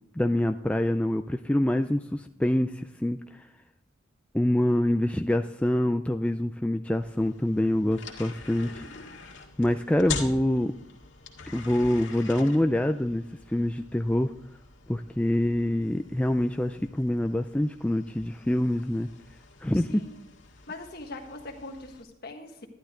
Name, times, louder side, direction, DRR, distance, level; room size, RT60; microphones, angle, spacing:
voice 1, 0.1-3.4 4.3-8.8 9.6-10.7 11.5-14.3 14.9-19.1 19.6-20.0, left 1 dB, 5° left, 6 dB, 0.3 m, -26 dB
sound 1, 7.0-22.0, left 5 dB, 75° left, 1.9 m, -44 dB
voice 2, 19.7-20.2 20.7-22.7, left 2 dB, 50° left, 3 dB, 1.6 m, -42 dB
12.0 x 11.0 x 3.8 m, 0.77 s
head